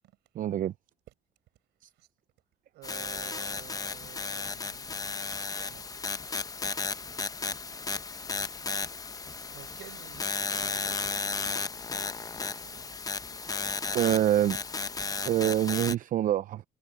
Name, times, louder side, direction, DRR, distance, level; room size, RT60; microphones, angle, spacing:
voice 1, 0.4-0.7 13.9-14.6 15.2-16.6, right 12 dB, 55° right, 0.6 m, -25 dB
voice 2, 2.7-5.9 9.5-12.0 12.3-13.0, right 16 dB, 80° right, 7.2 m, -51 dB
sound 1, 2.8-16.0, left 4 dB, 20° left, 0.8 m, -34 dB
cardioid pair, 110°, 17 cm